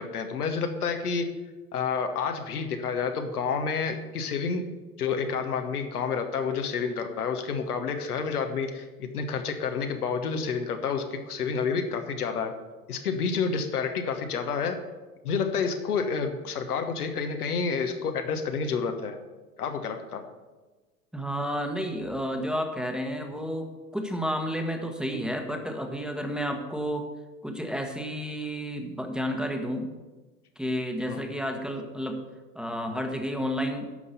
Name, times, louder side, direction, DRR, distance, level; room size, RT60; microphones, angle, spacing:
voice 1, 0.0-1.3 1.7-4.7 5.0-12.6 12.9-14.8 15.2-19.2 19.6-20.2 31.1-31.2, left 5 dB, 70° left, 6 dB, 1.3 m, -29 dB
voice 2, 21.1-23.7 23.9-27.1 27.4-29.9 30.6-32.2 32.5-33.9, equal, ahead, 3 dB, 1.2 m, -31 dB
11.5 x 5.5 x 6.9 m, 1.2 s
figure-of-eight pair, 85°, 47 cm